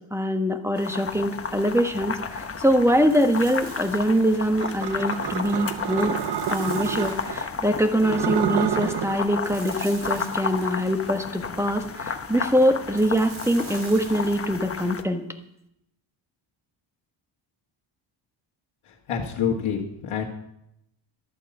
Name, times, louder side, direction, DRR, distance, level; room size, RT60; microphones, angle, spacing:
voice 1, 0.1-6.1 6.5-15.2, equal, 5° right, 6 dB, 1.2 m, -23 dB
sound 1, 0.8-15.0, left 5 dB, 30° left, 1.1 m, -33 dB
sound 2, 3.1-4.5 5.1-7.7 9.4-11.2 13.0-14.7, right 4 dB, 75° right, 3.5 m, -45 dB
sound 3, 4.6-7.4 7.9-9.2, right 11 dB, 55° right, 0.7 m, -29 dB
voice 2, 19.1-20.2, left 7 dB, 80° left, -2 dB, 1.7 m, -27 dB
12.0 x 8.4 x 7.0 m, 0.80 s
cardioid pair, 110°, 48 cm